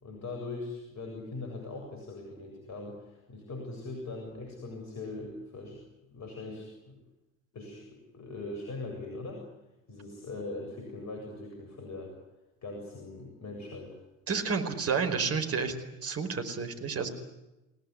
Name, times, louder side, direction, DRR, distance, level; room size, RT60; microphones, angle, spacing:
voice 1, 0.0-5.8 6.1-7.0 7.5-9.5 9.9-12.1 12.6-14.0, left 2 dB, 40° left, 2 dB, 7.7 m, -41 dB
voice 2, 14.3-15.7 16.0-17.1, right 5 dB, 35° right, 5 dB, 5.0 m, -30 dB
30.0 x 18.5 x 9.8 m, 1.0 s
figure-of-eight pair, 60°, 41 cm